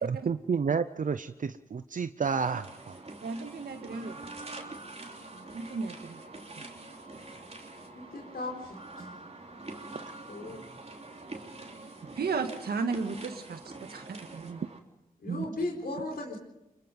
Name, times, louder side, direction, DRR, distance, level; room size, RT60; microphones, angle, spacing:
voice 1, 0.0-2.9, right 6 dB, 60° right, 11 dB, 0.7 m, -30 dB
sound 1, 2.2-14.8, right 2 dB, 40° right, 3.5 m, -45 dB
voice 2, 3.2-4.2 5.3-6.2 6.6-6.7 12.2-14.6 15.3-15.5, right 4 dB, 90° right, 6 dB, 1.9 m, -34 dB
voice 3, 7.9-9.1 10.3-10.6 15.2-16.4, left 2 dB, 75° left, 0 dB, 4.6 m, -36 dB
25.0 x 22.5 x 5.5 m, 0.91 s
cardioid pair, 45°, 16 cm